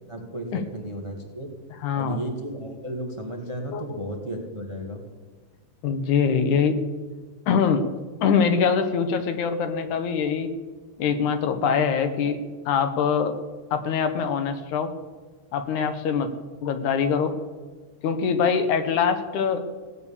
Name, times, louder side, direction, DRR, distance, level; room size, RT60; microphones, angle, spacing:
voice 1, 0.1-1.5 2.0-5.0, right 1 dB, 20° right, 2 dB, 0.7 m, -34 dB
voice 2, 1.8-2.2 3.7-4.0 5.8-6.8 7.5-7.8 8.2-10.5 11.0-12.4 12.7-13.4 13.7-14.9 15.5-16.3 16.6-17.3 18.0-19.7, left 6 dB, 75° left, 8 dB, 2.4 m, -23 dB
17.0 x 8.9 x 7.1 m, 1.4 s
omnidirectional pair, 3.6 m